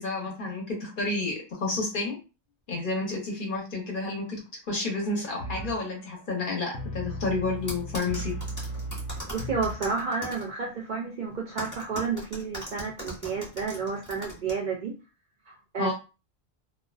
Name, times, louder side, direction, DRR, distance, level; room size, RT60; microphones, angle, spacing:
voice 1, 0.0-2.2 2.7-4.4 4.7-8.3 15.8-15.9, left 3 dB, 50° left, -1 dB, 0.9 m, -30 dB
sound 1, 4.8-10.4, equal, 85° left, 0.9 m, -38 dB
sound 2, 7.7-10.4 11.6-14.5, equal, 15° left, 1.0 m, -39 dB
voice 2, 9.3-14.9 15.5-15.9, right 5 dB, 60° right, 0 dB, 0.5 m, -31 dB
2.4 x 2.2 x 2.3 m, 0.31 s
omnidirectional pair, 1.1 m